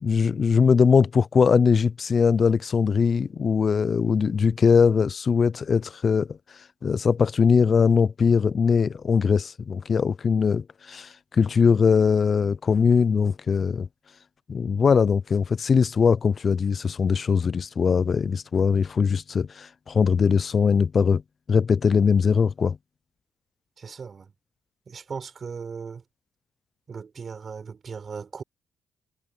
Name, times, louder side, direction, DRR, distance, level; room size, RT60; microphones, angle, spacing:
voice 1, 0.0-6.4 6.8-13.9 14.5-21.2 21.5-22.8, left 6 dB, 45° left, 0.4 m, -21 dB
voice 2, 23.8-24.3 24.9-26.0 26.9-28.4, right 5 dB, 40° right, 4.3 m, -37 dB
cardioid pair, 90°, 0 cm